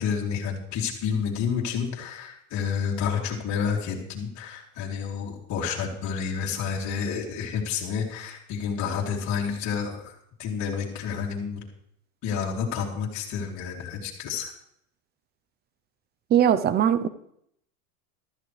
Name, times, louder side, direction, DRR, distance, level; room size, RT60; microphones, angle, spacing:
voice 1, 0.0-11.6 12.2-14.5, left 6 dB, 40° left, -3 dB, 3.1 m, -30 dB
voice 2, 16.3-17.1, right 9 dB, 20° right, 14 dB, 0.7 m, -20 dB
14.5 x 13.0 x 3.4 m, 0.72 s
supercardioid pair, 120°, 43 cm